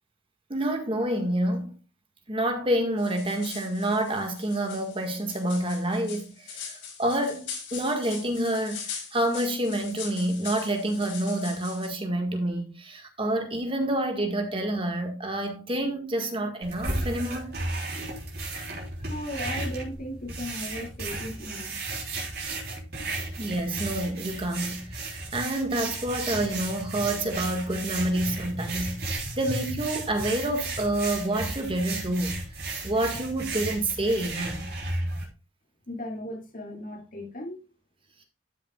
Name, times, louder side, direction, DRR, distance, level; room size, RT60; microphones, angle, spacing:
voice 1, 0.5-1.8 2.3-6.7 7.0-17.6 23.4-32.4 32.8-34.7, right 1 dB, 30° right, 1.7 m, -28 dB
sound 1, 3.0-11.9, left 6 dB, 80° left, 5.0 m, -41 dB
sound 2, 16.6-35.2, right 2 dB, 55° right, 3.5 m, -34 dB
voice 2, 19.0-21.8 23.0-23.2 35.9-37.7, left 1 dB, 45° left, 2.5 m, -37 dB
12.5 x 7.3 x 2.4 m
head